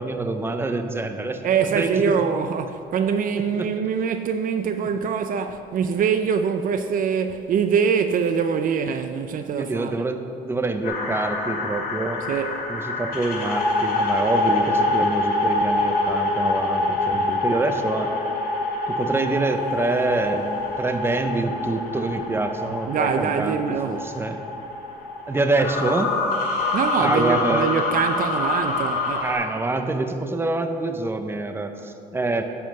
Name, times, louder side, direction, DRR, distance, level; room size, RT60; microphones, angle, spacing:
voice 1, 0.0-1.4 1.7-2.2 3.5-3.7 9.6-12.2 12.7-18.1 18.9-24.4 25.3-26.1 27.0-27.7 29.2-32.4, right 2 dB, 15° right, 0.8 m, -26 dB
voice 2, 1.4-10.0 12.3-12.7 17.1-17.2 22.9-24.0 26.7-29.3, right 6 dB, 55° right, 0.5 m, -24 dB
sound 1, 10.8-29.3, left 2 dB, 60° left, 2.5 m, -26 dB
10.5 x 5.6 x 6.5 m
cardioid pair, 110°, 17 cm